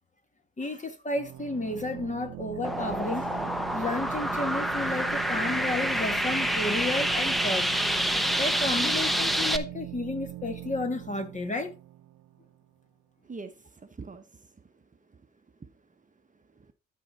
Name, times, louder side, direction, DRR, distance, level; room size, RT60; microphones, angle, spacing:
voice 1, 0.6-3.4 3.7-7.7 8.4-11.7, left 2 dB, 25° left, 1.9 m, -32 dB
sound 1, 1.2-12.7, right 15 dB, 85° right, 1.0 m, -41 dB
sound 2, 2.6-9.6, equal, ahead, 0.9 m, -27 dB
voice 2, 13.2-16.7, right 4 dB, 25° right, 1.1 m, -47 dB
13.0 x 4.7 x 4.2 m
cardioid pair, 90°, 30 cm